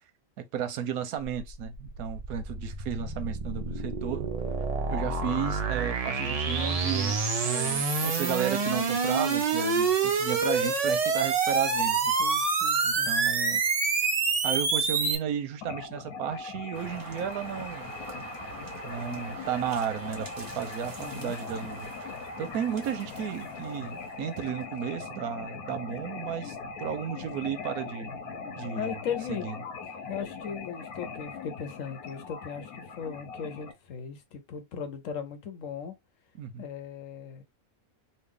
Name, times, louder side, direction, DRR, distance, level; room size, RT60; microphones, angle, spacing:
voice 1, 0.4-4.3 4.9-12.1 12.8-13.6 14.4-17.9 18.8-21.9 22.4-28.2 28.6-29.0 29.3-29.6 36.4-36.6, right 8 dB, 85° right, 1.1 m, -33 dB
sound 1, 1.4-15.2, right 4 dB, 55° right, 0.4 m, -27 dB
voice 2, 12.2-13.1 21.0-21.3 28.7-29.5 30.1-36.0 36.6-37.4, left 7 dB, 65° left, 1.0 m, -37 dB
sound 2, 15.6-33.7, left 4 dB, 85° left, 1.3 m, -40 dB
sound 3, 16.7-24.9, right 3 dB, 35° right, 1.3 m, -45 dB
3.2 x 2.4 x 3.5 m
omnidirectional pair, 1.5 m